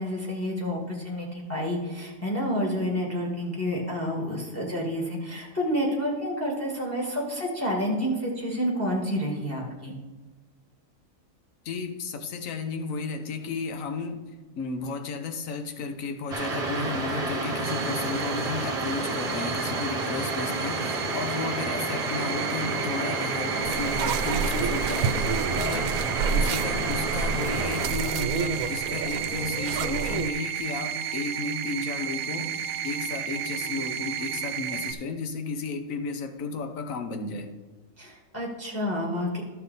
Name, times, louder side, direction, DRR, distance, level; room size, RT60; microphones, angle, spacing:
voice 1, 0.0-9.9 38.0-39.4, equal, 10° left, -2 dB, 1.7 m, -29 dB
voice 2, 11.6-14.2 14.6-26.0 26.3-32.5 32.8-37.5, left 4 dB, 70° left, 6 dB, 1.2 m, -33 dB
sound 1, 16.3-27.9, right 2 dB, 30° right, 1.2 m, -30 dB
sound 2, 17.6-34.9, right 9 dB, 65° right, 0.6 m, -33 dB
sound 3, 23.6-30.3, right 6 dB, 90° right, 1.1 m, -30 dB
13.0 x 5.7 x 4.1 m, 1.3 s
omnidirectional pair, 1.5 m